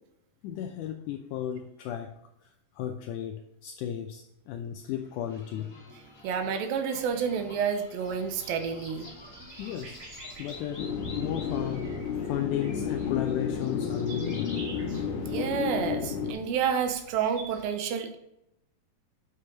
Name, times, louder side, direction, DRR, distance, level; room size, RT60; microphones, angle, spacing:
voice 1, 0.4-2.2 2.4-5.7 9.6-12.0 12.3-14.6, left 10 dB, 85° left, 1.8 m, -34 dB
sound 1, 4.9-14.6, left 2 dB, 15° left, 2.4 m, -49 dB
voice 2, 6.2-9.1 15.2-18.2, right 7 dB, 80° right, 2.6 m, -29 dB
sound 2, 8.0-17.6, right 3 dB, 55° right, 3.0 m, -50 dB
sound 3, 10.8-16.3, left 7 dB, 70° left, 2.4 m, -32 dB
7.8 x 6.5 x 3.9 m
omnidirectional pair, 4.1 m